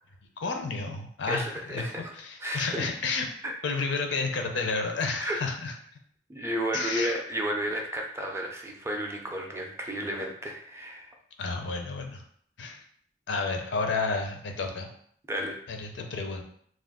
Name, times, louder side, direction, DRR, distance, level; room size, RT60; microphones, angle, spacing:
voice 1, 0.4-3.3 3.6-5.7 6.7-7.2 11.4-12.2 12.6-12.8 13.3-14.9 15.7-16.4, left 4 dB, 70° left, 4 dB, 0.5 m, -31 dB
voice 2, 1.3-2.1 2.4-2.9 3.4-3.5 5.2-5.4 6.3-11.1 15.3-15.6, equal, 15° right, 1 dB, 0.4 m, -32 dB
2.4 x 2.2 x 3.5 m, 0.63 s
head